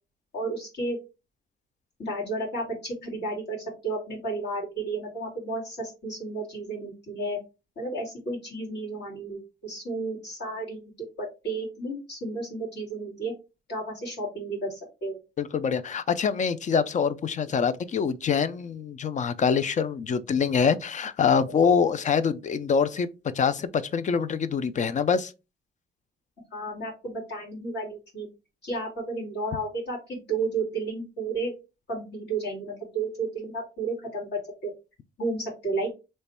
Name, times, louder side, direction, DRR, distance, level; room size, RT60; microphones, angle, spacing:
voice 1, 0.3-1.0 2.0-7.4 7.8-10.8 11.2-13.3 13.7-15.2 26.5-28.3 28.6-31.5 31.9-34.7 35.2-35.9, right 2 dB, 60° left, 1.9 m, -32 dB
voice 2, 15.4-25.3, left 6 dB, 40° left, 0.4 m, -25 dB
3.1 x 2.2 x 4.2 m
cardioid pair, 90°, 20 cm